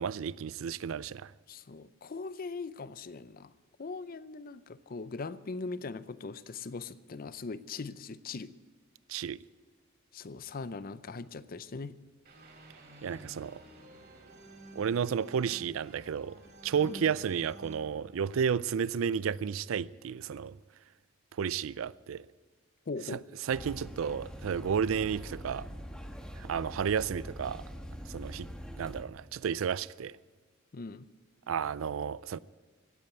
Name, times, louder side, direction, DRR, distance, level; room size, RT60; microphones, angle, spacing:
voice 1, 0.0-1.3 9.1-9.4 13.0-13.6 14.7-16.4 16.6-20.6 21.4-22.3 23.1-25.7 26.4-27.7 28.1-28.5 28.8-30.2 31.5-32.4, right 7 dB, 70° right, 0.4 m, -32 dB
voice 2, 1.5-3.5 3.8-8.5 10.1-12.0 16.8-17.1 22.9-23.3 30.7-31.1, left 4 dB, 45° left, 0.5 m, -40 dB
sound 1, 12.2-19.2, right 2 dB, 55° right, 4.2 m, -52 dB
sound 2, 23.5-29.0, equal, 5° left, 1.4 m, -43 dB
16.5 x 8.6 x 9.3 m
head